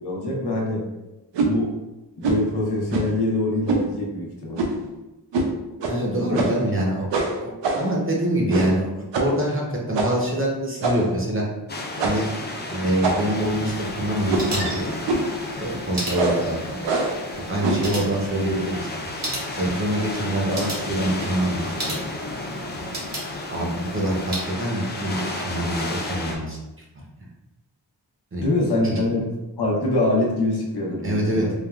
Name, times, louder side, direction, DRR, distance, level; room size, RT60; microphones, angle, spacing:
voice 1, 0.0-0.8 1.4-1.7 2.2-4.6 28.4-29.3 29.6-31.5, left 2 dB, 65° left, -2 dB, 0.8 m, -24 dB
sound 1, 1.3-1.5 2.2-2.5 2.9-3.2 3.7-3.9 4.6-4.9 5.3-5.5 5.8-6.0 6.3-6.7 7.1-8.0 8.5-8.8 9.1-9.4 9.9-10.3 10.8-11.2 12.0-12.3 13.0-13.5 14.3-14.6 15.1-15.4 16.1-16.5 16.8-17.2 17.6-17.9, right 3 dB, 90° right, 0.5 m, -24 dB
voice 2, 5.9-11.5 12.0-12.3 12.7-14.9 15.5-16.8 17.5-19.1 19.5-21.6 21.9-22.0 23.5-26.6 28.3-28.4 28.8-29.0 31.0-31.5, right 1 dB, 30° right, -3 dB, 0.7 m, -25 dB
sound 2, 11.7-26.4, left 2 dB, 25° left, 0.4 m, -32 dB
sound 3, 13.3-24.5, right 1 dB, 70° right, 1.1 m, -36 dB
3.3 x 2.2 x 2.3 m, 0.99 s
wide cardioid pair, 90°, 42 cm